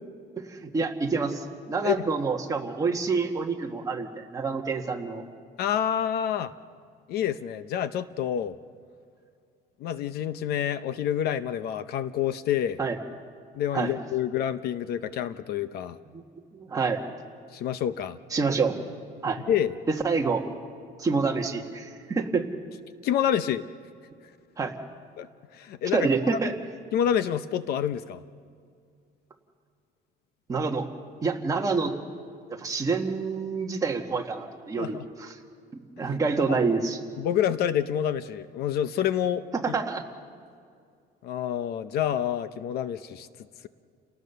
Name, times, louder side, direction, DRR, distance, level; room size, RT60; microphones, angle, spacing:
voice 1, 0.5-5.2 12.8-13.0 13.7-13.9 16.1-16.2 16.5-17.0 18.3-18.7 19.2-19.4 19.9-20.4 21.0-22.5 24.6-24.7 25.9-26.5 30.5-30.9 31.2-32.0 32.5-35.4 36.0-37.0 39.5-40.0, right 4 dB, 20° right, 2 dB, 1.6 m, -27 dB
voice 2, 5.6-6.5 7.1-8.5 9.8-12.8 13.6-16.0 17.5-18.2 19.5-19.8 23.0-23.7 25.2-26.4 26.9-28.2 34.8-35.1 36.0-36.2 36.5-36.6 37.2-39.7 41.2-43.3, left 10 dB, 60° left, 13 dB, 0.7 m, -28 dB
30.0 x 18.5 x 6.8 m, 2.3 s
cardioid pair, 175°, 18 cm